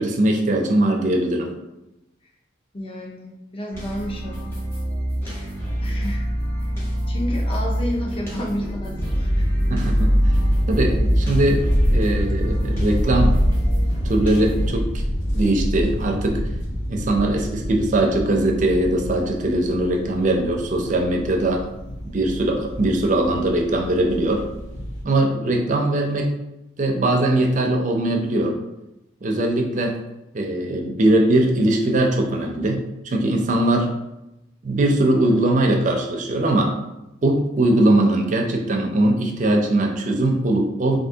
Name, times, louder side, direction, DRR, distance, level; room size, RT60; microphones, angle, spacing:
voice 1, 0.0-1.5 9.7-10.1 10.7-11.6 11.9-13.4 14.0-14.9 15.3-16.4 16.9-21.6 22.1-24.4 25.0-26.3 26.8-28.6 29.2-30.0 30.3-33.9 34.6-36.7 37.2-41.0, right 1 dB, 40° right, 2 dB, 0.5 m, -20 dB
voice 2, 2.7-4.4 5.2-5.5 5.8-6.2 7.1-9.4, left 1 dB, 30° left, -1 dB, 0.5 m, -30 dB
sound 1, 3.7-14.7, equal, 10° left, 0.9 m, -27 dB
sound 2, 9.0-25.0, equal, 70° left, 0.7 m, -24 dB
3.4 x 2.6 x 2.7 m, 0.92 s
head